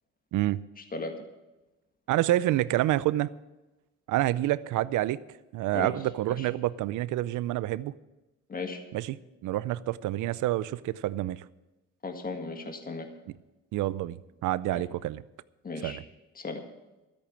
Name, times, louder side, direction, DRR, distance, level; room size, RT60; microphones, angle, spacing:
voice 1, 0.8-1.1 5.7-5.9 6.4-6.5 8.5-8.8 12.0-13.1 14.7-14.8 15.6-16.0 16.4-16.6, left 3 dB, 30° left, 1.9 m, -36 dB
voice 2, 2.1-3.3 4.1-5.2 5.5-7.9 8.9-11.4 13.7-15.2 15.8-16.0, right 15 dB, 85° right, 0.6 m, -28 dB
13.5 x 8.7 x 7.5 m
cardioid pair, 90°, 30 cm